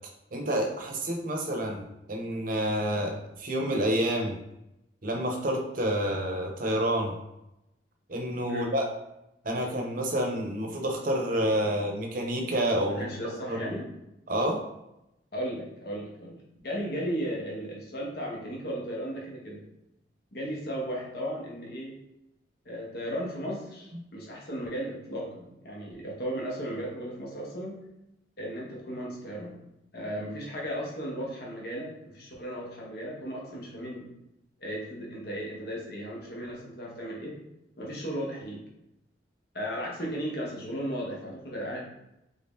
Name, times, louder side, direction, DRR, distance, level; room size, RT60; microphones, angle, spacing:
voice 1, 0.3-4.4 5.0-7.1 8.1-8.9 9.4-13.0 13.5-13.7 14.3-14.6 23.9-24.0, equal, 50° right, 2 dB, 0.7 m, -29 dB
voice 2, 12.9-13.9 15.3-19.6 20.3-22.0 22.6-27.8 28.4-29.6 29.9-34.1 34.6-37.4 37.8-38.6 39.5-41.8, equal, 60° left, -3 dB, 1.0 m, -35 dB
3.6 x 2.7 x 3.6 m, 0.86 s
head